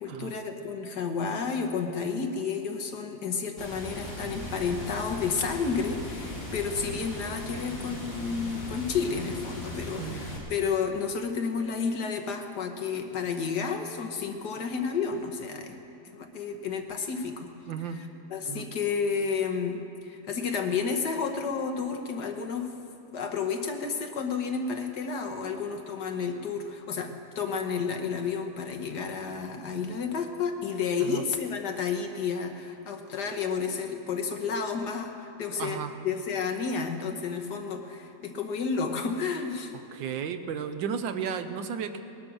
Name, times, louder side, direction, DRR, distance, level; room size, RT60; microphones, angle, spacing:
voice 1, 0.0-15.8 16.1-17.5 17.9-22.8 23.1-39.7, left 5 dB, 65° left, 4 dB, 1.7 m, -31 dB
Water, 3.6-10.4, left 1 dB, 40° left, 4.7 m, -38 dB
voice 2, 17.7-18.0 18.4-18.7 31.0-31.2 35.6-35.9 39.9-42.0, right 7 dB, 85° right, 9 dB, 1.6 m, -34 dB
20.0 x 12.0 x 6.2 m, 2.7 s
omnidirectional pair, 2.0 m